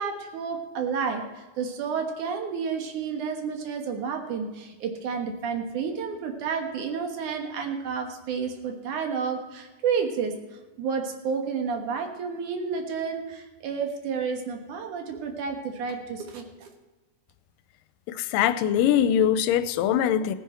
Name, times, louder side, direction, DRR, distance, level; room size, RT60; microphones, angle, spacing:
voice 1, 0.0-10.3 10.8-16.7, right 6 dB, 70° right, 4 dB, 2.7 m, -30 dB
voice 2, 18.1-20.3, left 9 dB, 90° left, 13 dB, 2.3 m, -22 dB
17.5 x 9.4 x 4.3 m, 1.2 s
omnidirectional pair, 3.9 m